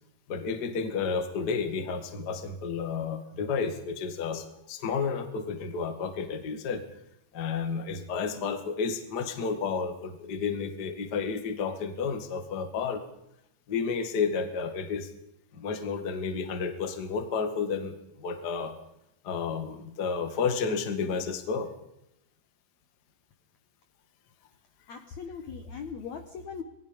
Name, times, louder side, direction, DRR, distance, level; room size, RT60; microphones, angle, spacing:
voice 1, 0.3-6.8 7.3-13.0 13.7-15.1 15.5-18.7 19.2-21.7, left 5 dB, 40° left, 7 dB, 1.5 m, -31 dB
voice 2, 24.9-26.6, left 6 dB, 65° left, 7 dB, 1.9 m, -39 dB
27.0 x 20.5 x 5.3 m, 0.82 s
omnidirectional pair, 5.0 m